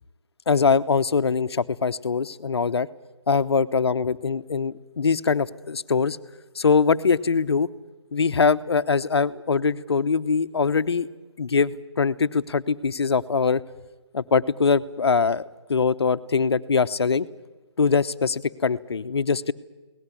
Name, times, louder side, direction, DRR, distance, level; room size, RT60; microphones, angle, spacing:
voice 1, 0.5-2.9 3.3-6.2 6.5-7.7 8.1-11.1 11.4-13.6 14.1-15.4 15.7-17.3 17.8-19.5, left 5 dB, 60° left, 13 dB, 1.0 m, -22 dB
23.0 x 18.5 x 9.9 m, 1.2 s
figure-of-eight pair, 155°, 15 cm